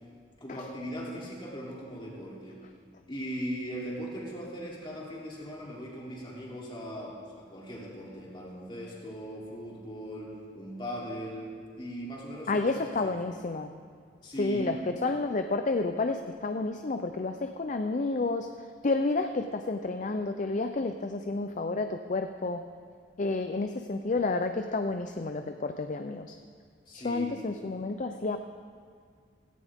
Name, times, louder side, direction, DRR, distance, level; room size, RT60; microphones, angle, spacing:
voice 1, 0.4-2.6 3.1-11.5 11.8-12.7 13.0-13.1 14.2-14.7 26.9-27.4, equal, 30° left, -4 dB, 3.1 m, -39 dB
voice 2, 12.5-13.7 14.4-22.6 23.2-26.3 26.9-28.4, left 3 dB, 45° left, 7 dB, 0.5 m, -30 dB
17.0 x 15.0 x 3.6 m, 2.1 s
head